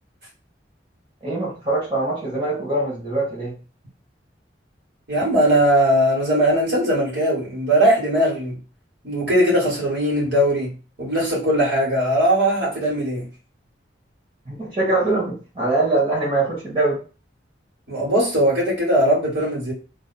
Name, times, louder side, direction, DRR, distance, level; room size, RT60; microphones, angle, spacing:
voice 1, 1.2-3.6 14.4-17.0, right 2 dB, 30° right, -7 dB, 1.7 m, -23 dB
voice 2, 5.1-8.6 9.0-13.3 17.9-19.7, equal, 60° right, -5 dB, 2.1 m, -19 dB
3.2 x 2.3 x 4.2 m, 0.35 s
head